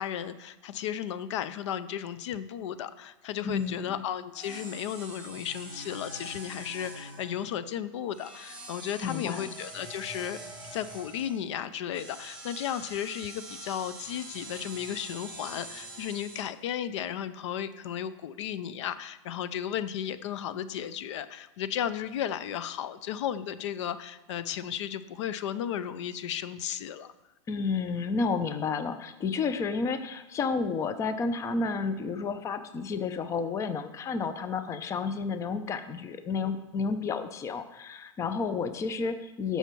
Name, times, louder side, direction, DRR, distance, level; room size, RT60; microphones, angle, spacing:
voice 1, 0.0-10.4 10.7-27.1, left 10 dB, 60° left, 14 dB, 0.6 m, -34 dB
voice 2, 3.4-4.0 9.0-9.5 27.5-39.6, left 4 dB, 20° left, 10 dB, 0.6 m, -31 dB
sound 1, 3.5-3.8 4.3-7.5 8.1-11.4 11.9-16.4, right 2 dB, 5° right, 3.4 m, -44 dB
12.5 x 5.7 x 4.6 m, 1.0 s
hypercardioid pair, 135°, 17 cm